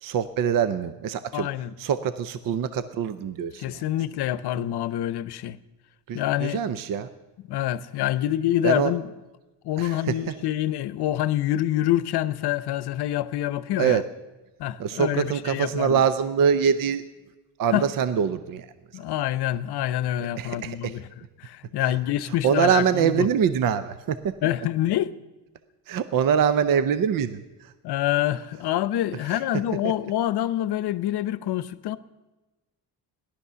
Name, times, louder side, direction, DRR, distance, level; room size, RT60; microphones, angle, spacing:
voice 1, 0.0-1.5 1.8-3.6 6.1-7.1 8.6-8.9 9.8-10.1 13.8-14.0 14.8-17.0 17.6-18.7 20.4-21.0 21.8-21.9 22.4-24.3 25.9-27.7 29.3-29.4, right 7 dB, 55° right, 0.7 m, -24 dB
voice 2, 1.3-1.7 3.6-5.6 6.1-6.6 7.5-9.1 9.6-14.0 14.6-16.0 17.7-17.9 18.9-21.0 21.4-23.3 24.4-25.2 27.8-32.0, left 13 dB, 70° left, 0.8 m, -26 dB
17.0 x 11.5 x 6.8 m
cardioid pair, 155°, 41 cm